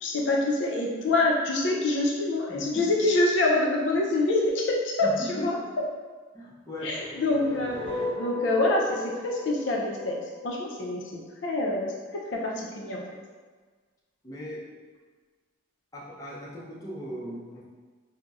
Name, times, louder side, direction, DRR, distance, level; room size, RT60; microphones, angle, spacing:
voice 1, 0.0-5.6 6.8-10.2 10.4-13.0, left 2 dB, 70° left, -1 dB, 0.4 m, -26 dB
voice 2, 2.5-2.9 5.0-5.6 6.3-7.0 14.2-14.7 15.9-17.6, equal, 15° left, -7 dB, 0.5 m, -38 dB
sound 1, 6.9-10.9, left 2 dB, 5° right, 1.4 m, -36 dB
3.9 x 2.0 x 2.3 m, 1.4 s
head